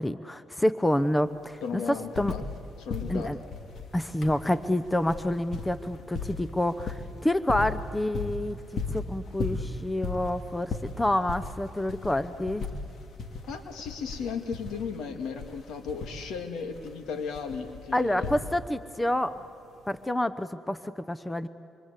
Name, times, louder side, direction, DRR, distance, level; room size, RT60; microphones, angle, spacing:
voice 1, 0.0-1.8 2.2-2.3 3.1-3.4 3.9-8.6 8.9-12.7 17.9-19.4 19.9-21.5, left 1 dB, 10° left, 13 dB, 0.8 m, -28 dB
sound 1, 0.8-0.9 1.2-2.6 2.9-18.9 19.9-20.0, left 4 dB, 60° left, 2.4 m, -37 dB
voice 2, 1.6-2.4 2.8-3.3 13.5-18.4, left 5 dB, 80° left, 6 dB, 2.3 m, -35 dB
26.5 x 23.5 x 8.4 m, 2.9 s
cardioid pair, 90°, 0 cm